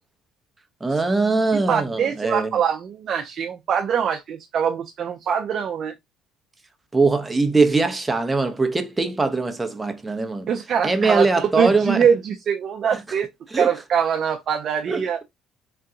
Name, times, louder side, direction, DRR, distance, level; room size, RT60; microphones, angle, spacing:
voice 1, 0.8-2.5 6.9-10.5 10.8-12.0 13.5-13.7 14.9-15.2, right 3 dB, 15° right, 0.7 m, -21 dB
voice 2, 1.5-5.9 10.5-13.3 13.6-15.2, right 7 dB, 50° right, 0.5 m, -23 dB
3.8 x 2.2 x 3.7 m
supercardioid pair, 85°, 0 cm